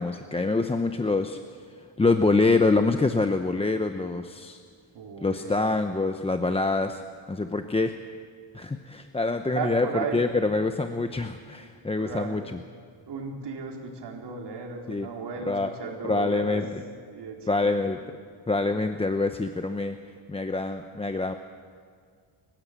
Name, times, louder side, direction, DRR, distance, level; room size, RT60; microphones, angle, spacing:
voice 1, 0.0-1.4 2.0-4.6 5.2-7.0 7.3-8.0 8.5-9.9 10.1-12.6 14.9-15.1 15.5-15.7 16.1-16.6 17.5-18.0 18.5-20.0 20.3-21.3, left 3 dB, 10° left, 7 dB, 0.7 m, -25 dB
voice 2, 4.9-5.6 9.5-10.2 12.0-12.5 13.1-16.6 17.1-17.7, right 5 dB, 55° right, 0 dB, 4.1 m, -35 dB
30.0 x 15.5 x 8.2 m, 2.1 s
cardioid pair, 130°, 49 cm